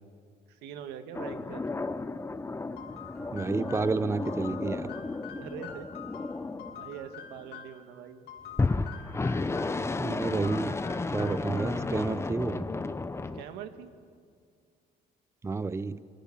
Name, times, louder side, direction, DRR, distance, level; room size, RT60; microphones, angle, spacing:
voice 1, 0.5-1.7 5.2-5.9 6.7-8.3 13.3-13.9, right 8 dB, 90° right, 8 dB, 1.9 m, -43 dB
sound 1, 1.1-7.5 8.5-13.4, left 3 dB, 15° left, 0.9 m, -33 dB
sound 2, 2.8-7.8 8.3-9.9 10.2-11.9, left 8 dB, 80° left, 3.4 m, -47 dB
voice 2, 3.3-4.9 10.0-10.8 11.1-12.7 15.4-16.0, right 4 dB, 15° right, 15 dB, 0.7 m, -30 dB
27.5 x 25.0 x 7.4 m, 2.2 s
cardioid pair, 110°, 17 cm